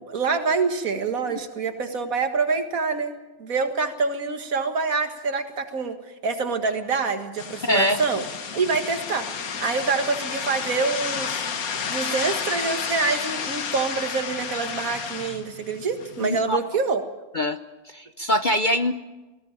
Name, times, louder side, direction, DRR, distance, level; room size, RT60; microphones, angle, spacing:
voice 1, 0.0-3.1 3.4-6.0 6.2-8.2 8.5-9.3 9.6-11.3 11.9-17.0, right 4 dB, 65° right, 7 dB, 2.1 m, -26 dB
sound 1, 7.4-16.4, left 6 dB, 70° left, 1.8 m, -31 dB
voice 2, 7.6-8.0 16.2-16.6 17.3-17.6 17.9-18.9, left 1 dB, 45° left, 9 dB, 0.7 m, -23 dB
19.5 x 16.5 x 8.9 m, 1.1 s
omnidirectional pair, 1.6 m